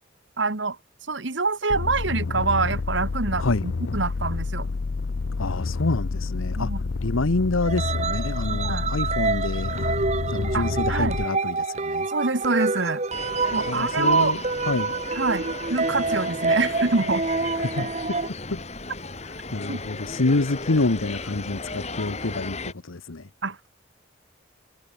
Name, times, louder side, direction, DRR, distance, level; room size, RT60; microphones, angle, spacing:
voice 1, 0.4-0.8 1.1-4.6 6.6-6.8 8.5-8.9 10.5-11.2 12.1-13.0 13.5-14.4 15.1-15.4 15.7-17.2 19.7-19.8 23.4-23.7, right 3 dB, 65° right, 1.6 m, -25 dB
sound 1, 1.7-11.2, left 3 dB, 65° left, 0.6 m, -29 dB
voice 2, 5.4-6.7 7.0-9.9 10.3-12.1 13.7-14.4 14.7-14.9 17.6-18.2 18.5-18.6 19.5-23.2, left 2 dB, 85° left, 1.1 m, -27 dB
sound 2, 7.6-18.3, right 3 dB, 35° right, 1.0 m, -27 dB
sound 3, 13.1-22.7, left 3 dB, 35° left, 2.9 m, -35 dB
head